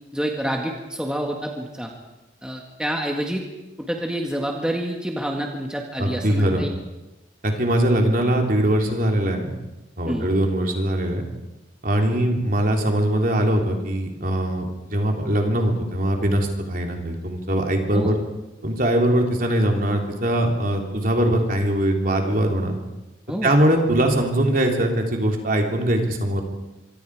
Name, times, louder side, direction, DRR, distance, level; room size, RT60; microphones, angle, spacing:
voice 1, 0.1-1.9 2.4-3.4 3.8-6.7 10.1-10.3 17.9-18.2 23.3-23.6, equal, 5° right, 1 dB, 1.8 m, -28 dB
voice 2, 6.0-6.7 7.4-9.5 10.0-11.3 11.8-18.2 18.6-22.8 23.4-26.4, right 1 dB, 45° right, 2 dB, 3.5 m, -21 dB
26.0 x 24.5 x 4.9 m, 1.0 s
head